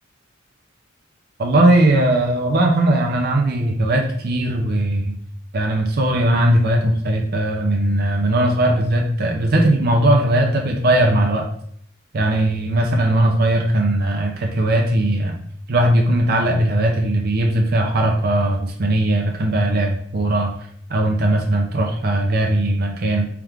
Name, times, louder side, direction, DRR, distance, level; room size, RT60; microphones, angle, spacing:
voice 1, 1.4-5.1 5.5-11.5 12.1-15.4 15.7-20.5 20.9-23.3, right 1 dB, 50° right, 2 dB, 0.6 m, -18 dB
3.5 x 3.3 x 3.4 m, 0.63 s
head